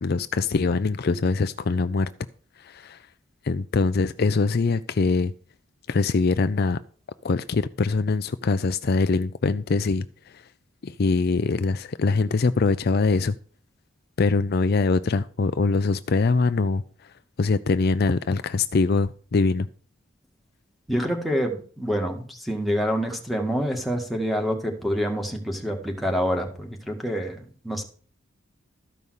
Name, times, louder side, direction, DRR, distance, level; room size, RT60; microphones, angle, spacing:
voice 1, 0.0-2.1 2.6-3.0 3.4-5.3 5.9-6.8 7.2-10.1 10.3-10.4 10.8-13.3 14.2-16.8 17.4-19.7, left 4 dB, 50° left, 0.5 m, -23 dB
voice 2, 20.9-27.8, equal, ahead, 2.0 m, -27 dB
14.0 x 5.5 x 6.5 m
head